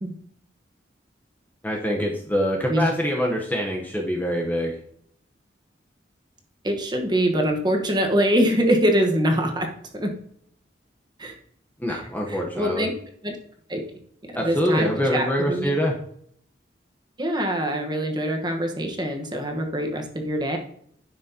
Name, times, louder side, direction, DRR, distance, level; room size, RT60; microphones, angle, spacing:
voice 1, 1.6-4.7 11.8-12.9 14.4-15.9, equal, 10° left, -1 dB, 0.9 m, -25 dB
voice 2, 6.6-9.7 9.9-10.1 11.2-11.3 11.9-12.9 13.2-13.3 13.7-13.8 14.4-15.7 17.2-20.6, equal, 25° right, 3 dB, 1.2 m, -24 dB
11.0 x 6.2 x 2.8 m, 0.65 s
head